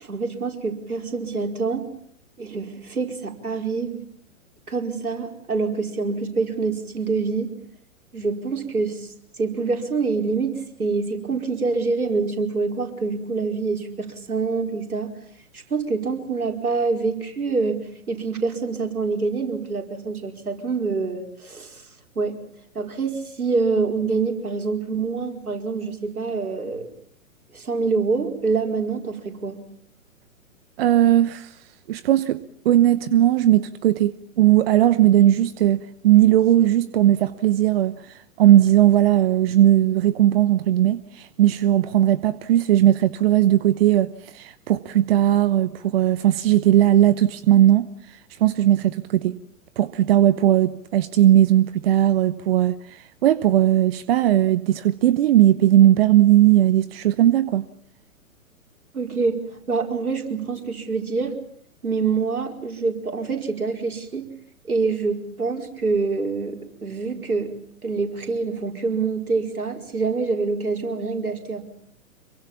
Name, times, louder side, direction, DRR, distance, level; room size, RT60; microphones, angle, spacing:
voice 1, 0.0-1.9 2.4-4.0 4.7-7.5 8.1-15.1 15.5-21.8 22.1-22.4 22.7-26.9 27.5-29.6 58.9-61.3 61.8-64.3 64.7-67.5 67.8-71.6, right 4 dB, 80° right, 5.0 m, -26 dB
voice 2, 30.8-31.5 31.9-38.0 38.4-47.9 48.4-49.3 49.8-57.7, right 12 dB, 45° right, 1.0 m, -18 dB
26.5 x 23.5 x 7.3 m
figure-of-eight pair, 120°, 43 cm